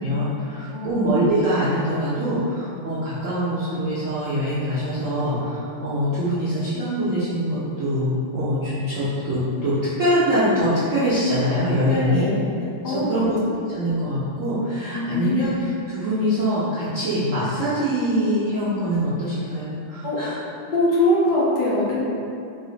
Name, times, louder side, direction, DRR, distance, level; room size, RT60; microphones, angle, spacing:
voice 1, 0.0-12.3 12.8-13.3 13.7-20.4, equal, 80° right, -11 dB, 0.7 m, -23 dB
voice 2, 0.7-1.0 11.9-12.4 12.8-13.3 14.9-15.5 20.0-20.2 20.7-22.0, left 1 dB, 65° left, -6 dB, 1.1 m, -22 dB
3.7 x 2.5 x 3.9 m, 2.6 s
omnidirectional pair, 2.4 m